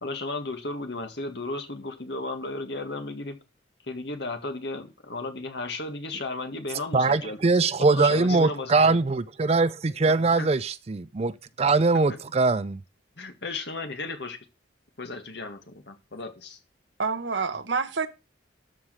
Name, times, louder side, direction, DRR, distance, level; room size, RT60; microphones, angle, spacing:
voice 1, 0.0-3.4 3.9-7.4 7.9-9.0 10.0-10.5 11.9-12.2 13.2-14.4 15.0-16.6, left 2 dB, 60° left, 1.9 m, -34 dB
voice 2, 6.9-11.3 11.6-12.8, right 3 dB, 35° right, 0.4 m, -22 dB
voice 3, 17.0-18.1, right 4 dB, 70° right, 1.1 m, -27 dB
13.0 x 5.0 x 6.2 m
head